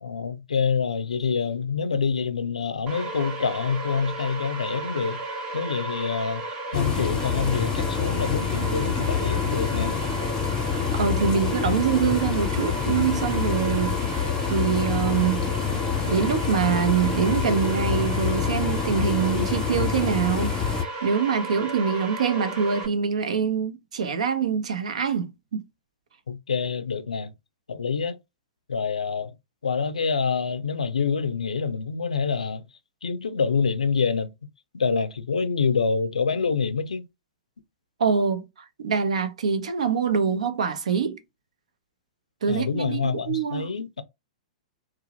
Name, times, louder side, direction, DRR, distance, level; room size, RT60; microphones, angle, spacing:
voice 1, 0.0-5.2 5.5-6.4 6.7-9.9 26.3-27.3 27.7-28.2 28.7-29.3 29.6-32.6 33.0-34.3 34.7-37.1 42.5-44.0, left 5 dB, 80° left, 0.4 m, -26 dB
sound 1, 2.9-22.9, right 2 dB, 30° right, 0.8 m, -34 dB
sound 2, 6.7-20.8, left 7 dB, 20° left, 0.4 m, -27 dB
voice 2, 10.7-15.5 16.1-25.6 38.0-38.4 38.8-41.2 42.4-43.7, right 6 dB, 70° right, 0.6 m, -25 dB
2.7 x 2.0 x 2.7 m
figure-of-eight pair, 110°, 4 cm